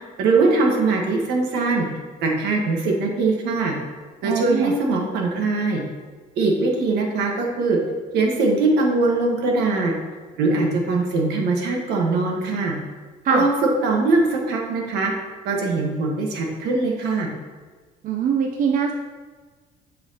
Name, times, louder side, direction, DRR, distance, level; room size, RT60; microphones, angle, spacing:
voice 1, 0.0-1.9 2.2-3.7 4.2-5.8 6.4-7.8 8.1-9.9 10.4-12.8 13.3-13.5 13.8-15.1 15.4-17.3, right 3 dB, 80° right, 0 dB, 1.3 m, -21 dB
voice 2, 4.2-4.7 13.2-13.5 18.0-18.9, right 6 dB, 55° right, 2 dB, 0.5 m, -22 dB
7.1 x 5.6 x 2.8 m, 1.4 s
cardioid pair, 110°, 17 cm